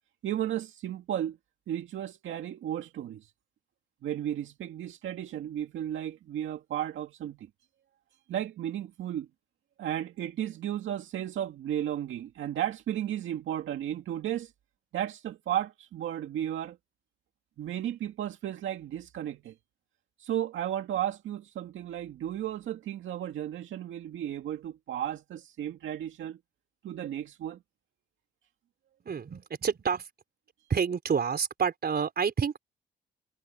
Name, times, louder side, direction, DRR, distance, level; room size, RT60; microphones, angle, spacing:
voice 1, 0.2-1.4 1.7-3.3 4.0-7.5 8.3-9.3 9.8-14.5 14.9-16.8 17.6-19.5 20.2-26.4 26.8-27.6, right 11 dB, 80° right, 2.1 m, -34 dB
voice 2, 29.0-30.1 30.7-32.6, right 6 dB, 55° right, 4.3 m, -28 dB
supercardioid pair, 60°, 20 cm